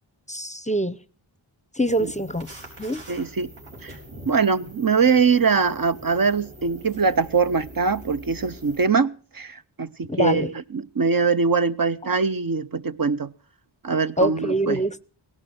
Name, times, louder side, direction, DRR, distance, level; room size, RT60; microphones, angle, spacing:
voice 1, 0.3-1.0 1.8-2.5 2.8-3.0 10.1-10.5 14.2-15.0, right 1 dB, 15° left, 0.7 m, -24 dB
sound 1, 1.9-8.9, equal, 75° right, 5.0 m, -43 dB
voice 2, 3.1-3.5 3.8-3.9 4.3-13.3 13.8-14.8, right 5 dB, 45° right, 0.7 m, -22 dB
17.5 x 11.5 x 5.9 m
cardioid pair, 45°, 49 cm